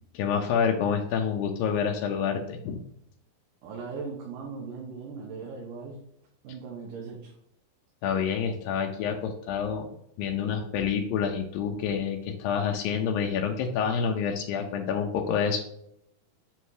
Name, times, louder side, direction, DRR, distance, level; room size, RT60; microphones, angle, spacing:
voice 1, 0.1-2.8 8.0-9.9 10.2-15.6, left 7 dB, 80° left, 3 dB, 2.4 m, -28 dB
voice 2, 3.6-6.0 6.4-7.3, right 5 dB, 70° right, -1 dB, 2.7 m, -38 dB
8.0 x 3.6 x 4.7 m, 0.75 s
omnidirectional pair, 4.1 m